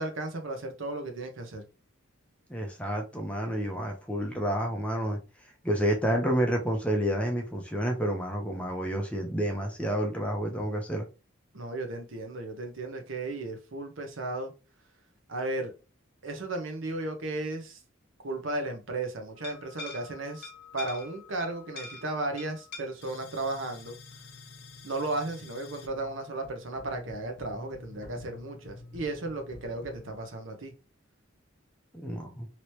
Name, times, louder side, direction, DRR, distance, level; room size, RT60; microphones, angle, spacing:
voice 1, 0.0-1.6 11.5-14.5 15.3-15.7 16.2-17.8 18.2-24.0 24.8-30.7, right 2 dB, 70° right, 0.8 m, -35 dB
voice 2, 2.5-5.2 5.6-11.0 32.0-32.5, equal, 5° left, 0.7 m, -29 dB
sound 1, 19.4-30.2, left 3 dB, 50° left, 0.9 m, -47 dB
3.0 x 2.9 x 3.1 m
head